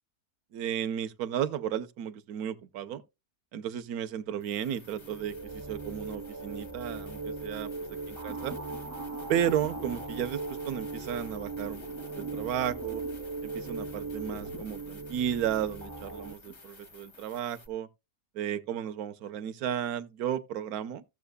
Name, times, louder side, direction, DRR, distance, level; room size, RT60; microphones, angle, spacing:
voice 1, 0.5-3.0 3.5-7.7 8.1-8.6 9.3-11.8 12.2-13.0 13.4-17.9 18.3-21.0, right 10 dB, 70° right, 1.2 m, -33 dB
sound 1, 4.4-17.7, left 3 dB, 30° left, 0.5 m, -52 dB
sound 2, 4.7-16.3, right 3 dB, 20° right, 0.5 m, -39 dB
sound 3, 8.3-10.5 11.3-14.8 15.2-15.3 16.4-16.6, equal, 65° left, 2.2 m, -48 dB
15.0 x 7.2 x 2.2 m
omnidirectional pair, 1.7 m